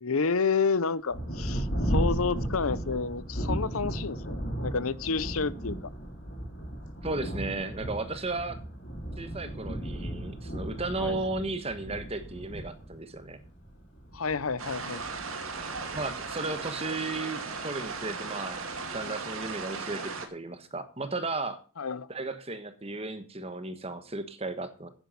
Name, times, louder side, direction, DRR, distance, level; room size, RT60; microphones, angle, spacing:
voice 1, 0.0-5.8 11.0-11.2 14.1-15.0 21.8-22.1, left 5 dB, 85° left, 0.8 m, -30 dB
Thunder, 1.1-17.2 17.9-18.0 18.6-19.0, right 1 dB, 55° left, 3.4 m, -35 dB
voice 2, 7.0-8.6 9.2-13.4 15.9-21.6 22.1-24.9, right 2 dB, 30° right, 1.3 m, -35 dB
sound 1, 14.6-20.3, right 4 dB, 80° right, 2.1 m, -37 dB
10.5 x 9.0 x 5.7 m
head